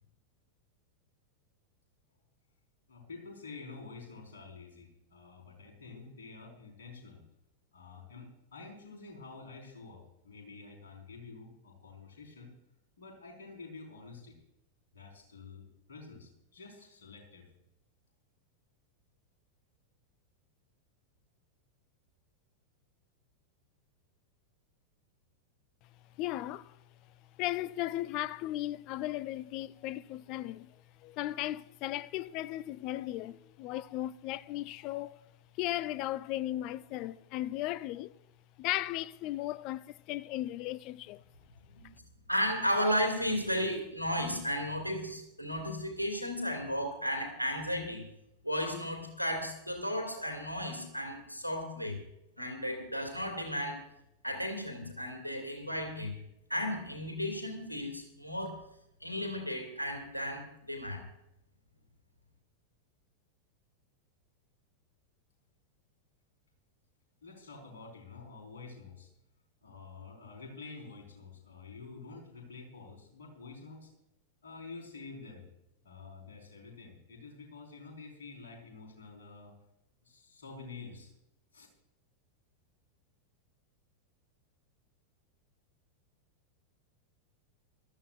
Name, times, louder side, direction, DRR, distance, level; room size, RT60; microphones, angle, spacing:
voice 1, 2.9-7.2 7.7-12.5 13.0-14.4 14.9-17.5 67.2-69.1 69.6-73.9 74.4-75.4 75.8-79.5 80.0-81.1 81.5-81.7, left 4 dB, 60° left, 4.8 m, -49 dB
voice 2, 26.2-26.8 27.4-30.8 31.0-35.2 35.6-38.1 38.6-41.2, left 15 dB, 40° left, 0.4 m, -36 dB
voice 3, 42.3-48.0 48.4-52.0 52.4-53.8 54.2-56.1 56.5-58.6 59.0-61.0, equal, 85° left, 2.6 m, -34 dB
22.0 x 13.5 x 2.6 m
figure-of-eight pair, 90°, 0 cm